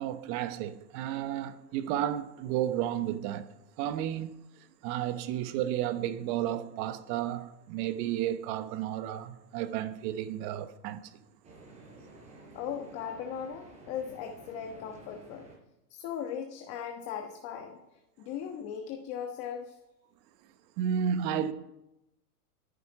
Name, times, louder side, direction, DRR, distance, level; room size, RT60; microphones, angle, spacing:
voice 1, 0.0-4.3 4.8-11.1 20.8-21.5, right 10 dB, 30° right, 1.0 m, -32 dB
sound 1, 11.4-15.6, right 2 dB, 15° right, 4.9 m, -52 dB
voice 2, 12.5-15.5 15.9-17.8 18.2-19.8, left 8 dB, 30° left, 1.3 m, -38 dB
21.0 x 10.5 x 4.8 m
supercardioid pair, 155°, 48 cm